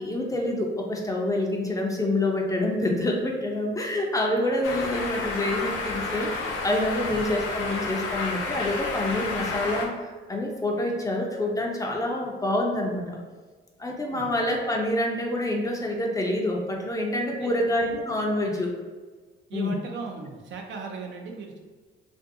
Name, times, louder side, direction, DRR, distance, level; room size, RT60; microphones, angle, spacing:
voice 1, 0.0-13.2 13.8-18.7 19.5-19.7, left 1 dB, 15° left, 0 dB, 0.4 m, -27 dB
sound 1, 4.6-9.9, left 3 dB, 85° left, 0.5 m, -31 dB
voice 2, 19.5-21.6, right 4 dB, 70° right, 2 dB, 0.5 m, -37 dB
2.5 x 2.3 x 2.6 m, 1.4 s
cardioid pair, 90°, 20 cm